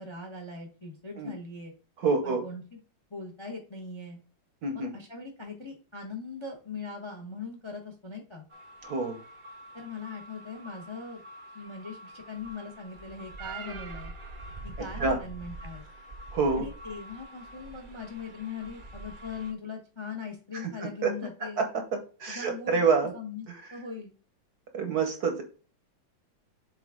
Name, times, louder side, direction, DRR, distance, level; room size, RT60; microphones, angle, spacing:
voice 1, 0.0-1.7 2.2-2.8 3.1-4.2 4.7-8.5 9.7-11.2 11.5-14.1 14.6-15.8 16.6-21.6 22.3-22.9 23.1-23.4 23.7-24.1, left 4 dB, 20° left, 2 dB, 0.8 m, -40 dB
voice 2, 2.0-2.4 4.6-4.9 8.8-9.2 14.8-15.2 16.3-16.7 20.5-20.7 21.0-21.1 21.6-23.1 23.5-23.6 24.7-25.4, right 4 dB, 55° right, 5 dB, 1.3 m, -27 dB
sound 1, 8.5-19.5, right 2 dB, 85° right, 0.4 m, -45 dB
7.2 x 4.1 x 3.6 m, 0.37 s
omnidirectional pair, 2.2 m